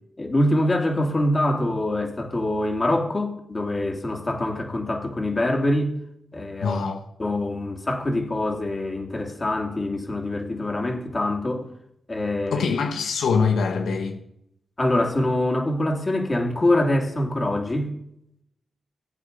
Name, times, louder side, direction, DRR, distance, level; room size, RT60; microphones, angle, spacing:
voice 1, 0.2-5.9 6.3-6.8 7.2-11.7 12.1-12.6 14.8-17.9, left 1 dB, 30° left, 3.0 m, -24 dB
voice 2, 6.6-7.0 12.5-14.2, left 5 dB, 85° left, 1.2 m, -23 dB
16.0 x 8.5 x 6.8 m
cardioid pair, 75°, 0 cm